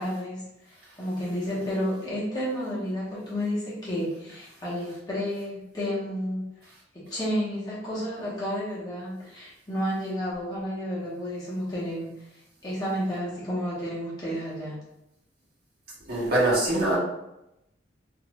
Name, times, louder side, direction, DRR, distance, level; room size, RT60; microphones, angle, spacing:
voice 1, 0.0-6.4 6.9-12.3 12.6-14.8, equal, 20° left, -8 dB, 0.8 m, -31 dB
voice 2, 16.1-17.0, right 1 dB, 50° right, -7 dB, 1.0 m, -23 dB
2.5 x 2.3 x 3.0 m, 0.86 s
head